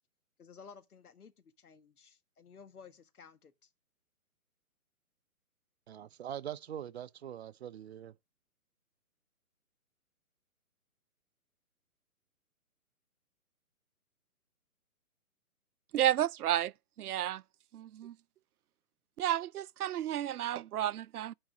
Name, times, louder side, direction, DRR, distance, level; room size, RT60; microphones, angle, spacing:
voice 1, 0.4-3.7, left 6 dB, 85° left, 1.6 m, -55 dB
voice 2, 5.9-8.1, right 10 dB, 45° right, 0.7 m, -43 dB
voice 3, 15.9-16.7 17.0-17.4 17.7-18.1 19.2-21.3, right 11 dB, 85° right, 0.5 m, -31 dB
10.0 x 4.2 x 6.2 m
hypercardioid pair, 150°, 44 cm